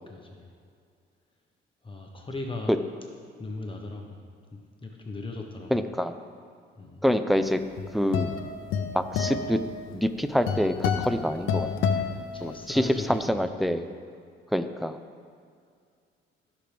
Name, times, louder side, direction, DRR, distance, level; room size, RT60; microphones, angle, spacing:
voice 1, 0.1-0.4 1.8-2.7 3.4-4.2 4.8-5.7 6.8-7.0 11.6-13.8, left 2 dB, 25° left, 1 dB, 1.2 m, -38 dB
voice 2, 5.7-6.2 7.0-7.6 7.9-8.3 8.9-9.6 9.9-11.7 12.4-13.8 14.5-15.0, equal, ahead, 9 dB, 0.6 m, -26 dB
sound 1, 7.5-13.0, left 6 dB, 90° left, 0.7 m, -29 dB
17.0 x 6.1 x 3.5 m, 2.2 s
cardioid pair, 90°, 20 cm